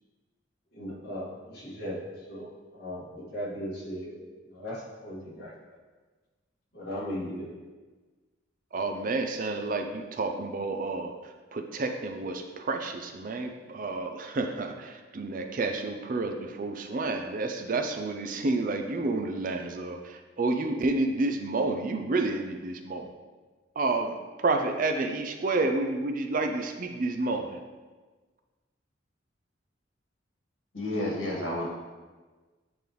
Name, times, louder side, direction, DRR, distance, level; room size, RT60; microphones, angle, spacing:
voice 1, 0.7-4.1 4.4-5.5 6.7-7.5, equal, 55° left, -7 dB, 1.8 m, -37 dB
voice 2, 8.7-11.1 11.5-23.1 23.8-27.6, right 3 dB, 45° right, 6 dB, 0.4 m, -30 dB
voice 3, 30.7-31.7, left 1 dB, 85° left, -5 dB, 1.8 m, -30 dB
9.1 x 3.4 x 3.0 m, 1.3 s
head